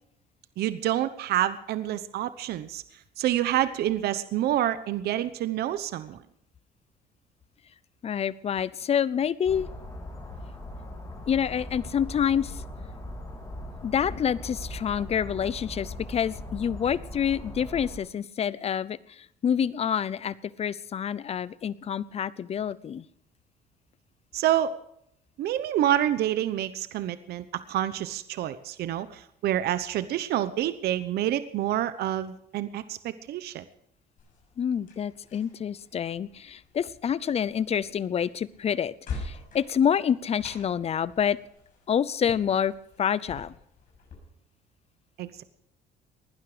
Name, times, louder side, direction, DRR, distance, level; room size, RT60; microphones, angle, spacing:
voice 1, 0.6-2.8 3.2-6.2 24.3-24.7 25.4-33.6 45.2-45.4, right 12 dB, 70° right, 13 dB, 0.9 m, -28 dB
voice 2, 8.0-9.7 11.3-12.6 13.8-23.1 34.6-41.4 41.9-43.5, left 8 dB, 40° left, 19 dB, 0.6 m, -27 dB
sound 1, 9.5-18.0, left 1 dB, 20° left, 6.5 m, -40 dB
sound 2, 34.2-44.2, left 4 dB, 55° left, 6.7 m, -45 dB
19.5 x 12.0 x 5.0 m, 0.73 s
cardioid pair, 110°, 17 cm